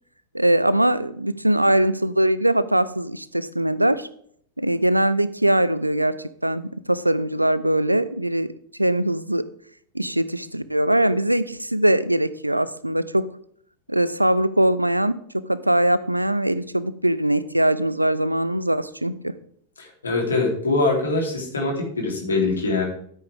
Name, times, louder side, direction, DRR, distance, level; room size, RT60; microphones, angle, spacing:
voice 1, 0.3-4.1 4.6-6.1 6.4-8.5 8.8-9.4 9.9-13.3 13.9-15.2 15.5-19.3, right 1 dB, 85° right, 17 dB, 0.5 m, -21 dB
voice 2, 19.8-22.8, left 3 dB, 75° left, 0 dB, 3.5 m, -23 dB
13.5 x 8.4 x 3.6 m, 0.63 s
figure-of-eight pair, 90°, 0 cm